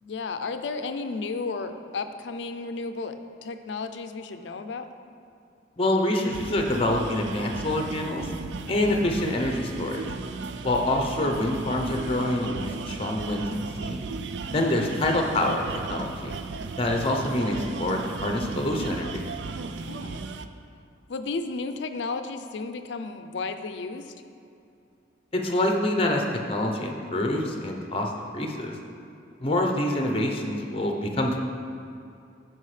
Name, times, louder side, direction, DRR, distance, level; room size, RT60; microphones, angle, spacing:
voice 1, 0.0-3.2 3.4-4.9 14.8-15.0 19.9-20.2 21.1-24.1, left 4 dB, 75° left, 8 dB, 0.5 m, -33 dB
voice 2, 5.8-8.3 8.7-10.0 10.6-13.5 13.8-14.0 14.5-16.4 16.8-19.2 25.3-28.7 29.4-31.4, left 1 dB, 30° left, 2 dB, 0.7 m, -26 dB
sound 1, 6.3-20.4, right 4 dB, 70° right, 0.4 m, -35 dB
13.5 x 4.7 x 3.3 m, 2.6 s
head